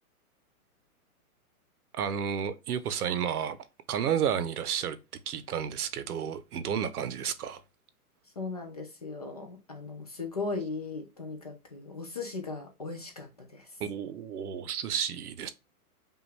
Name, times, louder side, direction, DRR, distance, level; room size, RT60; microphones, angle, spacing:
voice 1, 1.9-3.6 3.9-5.0 5.3-7.6 13.8-15.5, right 8 dB, 80° right, 0.9 m, -31 dB
voice 2, 8.4-13.7, left 3 dB, 30° left, 0.4 m, -38 dB
5.5 x 2.5 x 3.2 m
hypercardioid pair, 170°, 45 cm